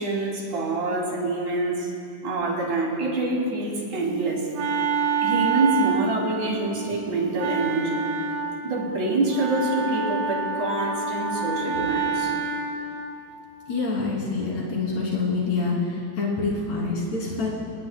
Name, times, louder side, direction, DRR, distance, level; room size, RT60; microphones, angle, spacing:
voice 1, 0.0-1.9 2.2-4.5 5.2-8.0 8.6-12.3, right 2 dB, 85° right, -2 dB, 4.4 m, -26 dB
Wind instrument woodwind instrument, 4.0-13.1, right 5 dB, 60° right, 2.1 m, -28 dB
voice 2, 13.7-17.6, left 3 dB, 70° left, -5 dB, 4.4 m, -26 dB
27.5 x 19.5 x 2.3 m, 2.6 s
omnidirectional pair, 3.3 m